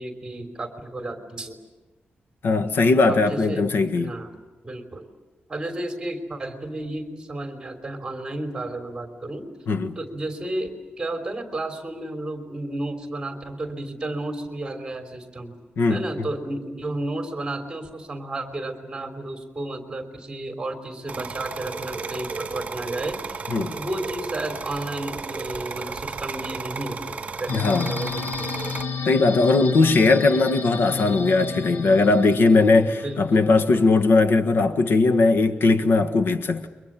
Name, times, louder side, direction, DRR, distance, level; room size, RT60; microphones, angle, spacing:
voice 1, 0.0-1.6 3.1-3.6 4.0-4.3 4.6-5.1 5.5-9.5 9.9-10.7 11.0-15.5 15.9-28.5 32.8-33.8, right 1 dB, 20° right, 3.2 m, -32 dB
voice 2, 2.4-4.1 9.7-10.0 15.8-16.0 23.5-23.7 27.5-27.9 29.0-36.7, left 3 dB, 90° left, 1.5 m, -19 dB
sound 1, 21.1-28.8, right 4 dB, 35° right, 2.2 m, -34 dB
sound 2, 27.5-34.0, left 6 dB, 65° left, 1.3 m, -31 dB
30.0 x 23.5 x 7.5 m
wide cardioid pair, 165°, 4 cm